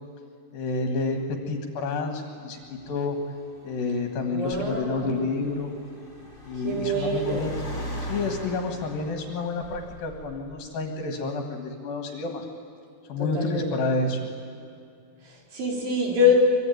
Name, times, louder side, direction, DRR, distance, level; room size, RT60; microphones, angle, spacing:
voice 1, 0.5-3.2 3.6-5.7 6.4-7.5 8.0-12.5 13.1-14.3, left 3 dB, 65° left, 4 dB, 3.3 m, -29 dB
Car, 2.6-10.6, equal, 15° left, 5.5 m, -40 dB
voice 2, 4.3-5.2 6.6-7.6 13.2-13.7 15.2-16.3, left 3 dB, 55° right, -1 dB, 5.7 m, -25 dB
24.0 x 24.0 x 9.3 m, 2.4 s
omnidirectional pair, 4.8 m